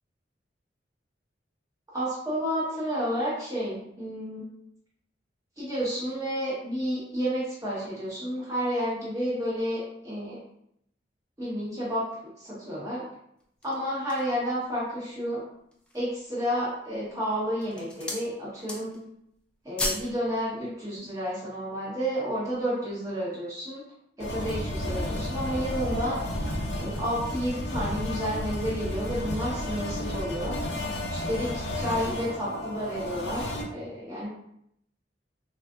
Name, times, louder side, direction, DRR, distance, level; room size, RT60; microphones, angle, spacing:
voice 1, 1.9-4.4 5.6-10.4 11.4-12.0 12.4-13.0 13.6-15.4 15.9-19.0 19.6-23.8 24.2-26.2 26.8-30.6 31.1-34.3, equal, 20° right, -8 dB, 1.1 m, -31 dB
sound 1, 13.4-14.4 15.0-15.1 15.6-16.1 16.8-17.2 17.5-18.3 18.6-19.1 19.4-20.1 20.4-20.6, left 1 dB, 5° left, 0.4 m, -34 dB
sound 2, 24.2-33.6, left 1 dB, 65° left, 0.7 m, -32 dB
3.4 x 2.5 x 2.4 m, 0.73 s
head